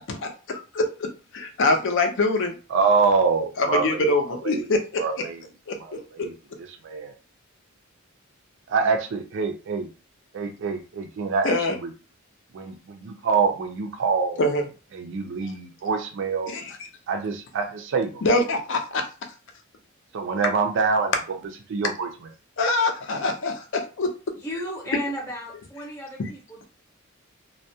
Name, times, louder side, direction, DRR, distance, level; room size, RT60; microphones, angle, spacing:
voice 1, 0.1-0.8 1.3-2.5 3.8-4.8 5.7-5.8 11.4-11.8 14.4-14.6 16.5-16.7 18.2-19.0 22.6-24.1, left 2 dB, 60° left, 5 dB, 0.5 m, -24 dB
voice 2, 2.7-4.2 4.4-4.7 5.0-5.4 5.8-7.1 8.7-9.9 10.3-11.9 12.5-14.4 14.9-16.5 17.1-18.2 20.1-21.4 21.7-22.1, right 5 dB, 60° right, 5 dB, 0.4 m, -25 dB
voice 3, 24.3-26.6, equal, 10° left, -4 dB, 0.7 m, -34 dB
2.3 x 2.1 x 2.7 m, 0.33 s
head